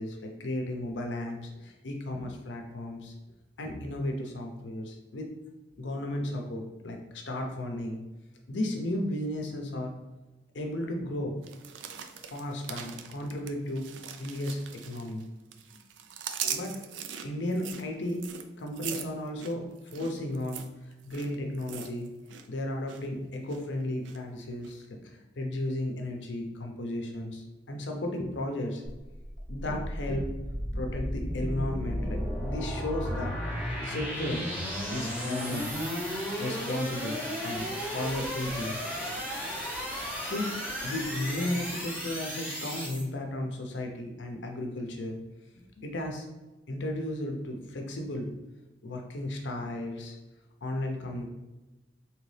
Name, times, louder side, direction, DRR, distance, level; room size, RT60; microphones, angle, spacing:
voice 1, 0.0-3.1 3.6-5.3 5.8-8.0 8.5-9.9 10.5-11.3 12.3-13.9 14.2-15.2 16.4-16.7 17.2-18.2 18.6-22.1 22.5-28.8 29.5-30.3 30.7-33.3 33.8-34.4 34.9-35.7 36.4-37.2 37.4-38.8 40.2-40.5 40.8-45.2 45.8-46.3 46.7-48.3 48.8-50.2 50.6-51.3, left 1 dB, 85° left, 2 dB, 0.6 m, -34 dB
sound 1, 11.4-15.2 15.5-22.5 22.7-23.1 23.5-24.2 24.6-24.7, right 8 dB, 85° right, 0.4 m, -40 dB
sound 2, 28.8-43.0, equal, 10° right, 1.4 m, -34 dB
4.0 x 3.0 x 3.2 m, 1.1 s
head